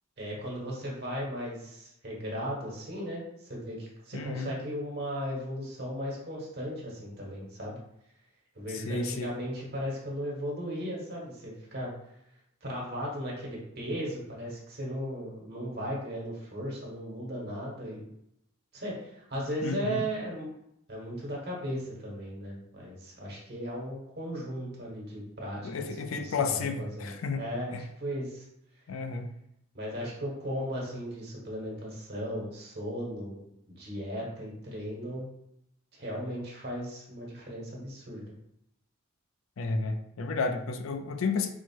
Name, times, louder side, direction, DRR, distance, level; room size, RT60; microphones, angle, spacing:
voice 1, 0.2-7.8 8.5-11.9 12.6-18.0 18.7-20.5 20.9-28.4 29.7-33.4 33.8-35.2 35.9-38.2, equal, 50° right, -4 dB, 1.4 m, -36 dB
voice 2, 4.1-4.5 8.7-9.3 19.6-20.0 25.6-27.4 27.7-27.8 28.9-29.3 39.6-41.5, left 4 dB, 75° left, 7 dB, 0.4 m, -32 dB
4.5 x 2.1 x 4.5 m, 0.79 s
head